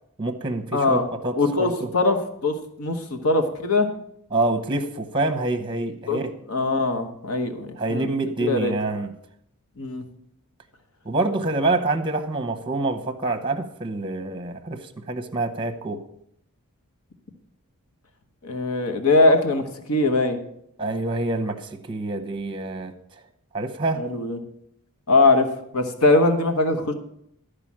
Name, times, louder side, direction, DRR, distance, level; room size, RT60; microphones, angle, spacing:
voice 1, 0.2-1.9 4.3-6.3 7.7-9.1 11.0-16.0 20.8-23.2 23.5-24.1, right 2 dB, 20° right, 7 dB, 0.9 m, -26 dB
voice 2, 0.7-1.1 1.4-3.9 6.1-6.2 6.5-8.1 8.4-8.7 9.8-10.0 18.4-20.4 24.0-24.4 25.1-25.5 25.7-26.9, left 2 dB, 75° left, 7 dB, 1.2 m, -21 dB
13.0 x 5.0 x 7.4 m, 0.73 s
head